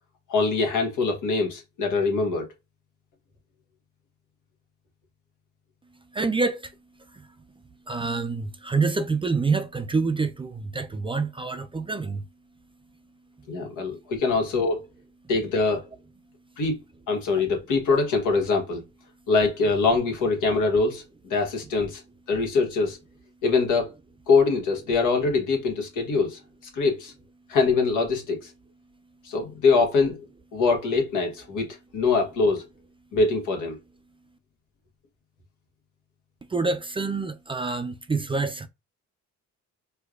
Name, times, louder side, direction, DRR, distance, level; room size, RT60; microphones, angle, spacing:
voice 1, 0.3-2.5 13.5-14.8 15.3-15.8 16.6-16.8 17.1-18.8 19.3-21.0 21.3-22.0 22.3-23.0 23.4-23.9 24.3-26.4 26.7-27.1 27.5-28.5 29.2-30.2 30.5-32.6 33.1-33.8, left 4 dB, 90° left, 1.3 m, -23 dB
voice 2, 6.1-6.7 7.1-7.3 7.9-12.3 36.5-38.7, right 4 dB, 20° right, 0.3 m, -27 dB
4.5 x 2.2 x 2.4 m
cardioid pair, 90°, 30 cm